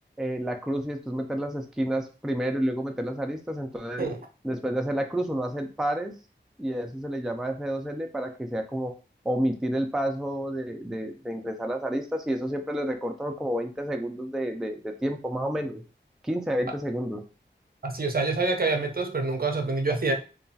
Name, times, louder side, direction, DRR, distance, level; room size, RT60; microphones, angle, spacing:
voice 1, 0.2-4.1 4.4-6.1 6.6-8.9 9.2-15.8 16.2-17.2, right 1 dB, ahead, 4 dB, 0.3 m, -30 dB
voice 2, 17.8-20.1, right 3 dB, 50° right, 4 dB, 0.5 m, -26 dB
2.9 x 2.2 x 2.7 m, 0.34 s
wide cardioid pair, 65°, 19 cm